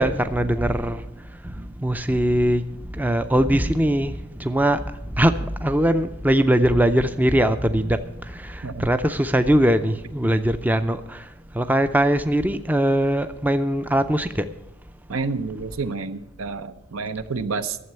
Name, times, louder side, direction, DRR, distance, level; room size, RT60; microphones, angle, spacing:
voice 1, 0.0-11.3 11.5-14.5, right 1 dB, 10° right, 0.4 m, -21 dB
voice 2, 15.1-17.8, right 4 dB, 80° right, 0.8 m, -29 dB
12.5 x 7.5 x 8.5 m
head